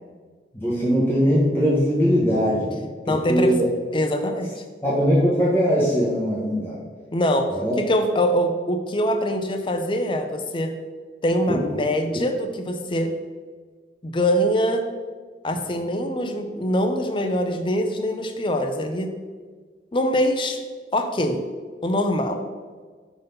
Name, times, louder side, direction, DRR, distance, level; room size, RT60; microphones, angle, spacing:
voice 1, 0.5-2.8 3.1-3.7 4.8-6.8 7.5-7.7 11.5-11.6, equal, 15° left, -8 dB, 1.1 m, -20 dB
voice 2, 3.1-3.6 3.9-4.5 7.1-7.5 7.8-10.7 11.2-13.1 14.0-14.8 15.4-19.1 19.9-20.6 20.9-21.4 21.8-22.4, equal, 30° left, 6 dB, 0.5 m, -23 dB
5.3 x 4.1 x 5.4 m, 1.5 s
head